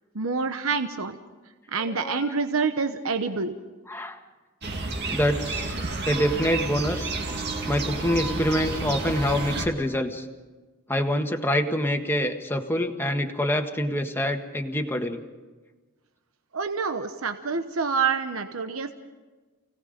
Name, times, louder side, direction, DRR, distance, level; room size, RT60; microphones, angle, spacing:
voice 1, 0.1-1.2 1.7-3.5 16.5-18.9, right 5 dB, 75° right, 8 dB, 1.0 m, -27 dB
voice 2, 1.9-2.4 3.9-4.2 5.1-7.2 7.7-10.2 10.9-15.2, equal, 10° left, 4 dB, 1.5 m, -26 dB
sound 1, 4.6-9.7, right 3 dB, 55° right, 2.4 m, -30 dB
29.0 x 18.0 x 5.2 m, 1.3 s
head